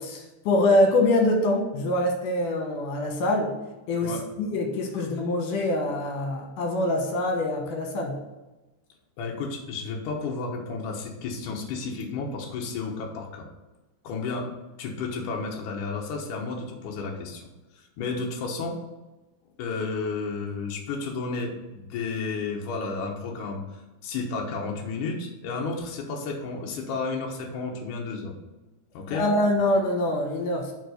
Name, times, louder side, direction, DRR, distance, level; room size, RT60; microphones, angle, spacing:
voice 1, 0.0-3.5 3.9-8.2 29.1-30.7, left 1 dB, 65° left, 3 dB, 2.2 m, -24 dB
voice 2, 9.2-13.5 14.0-14.5 14.8-17.5 17.7-18.8 19.6-28.3 28.9-29.2, left 4 dB, 85° left, 0 dB, 1.7 m, -32 dB
7.7 x 4.7 x 6.4 m, 1.1 s
omnidirectional pair, 5.3 m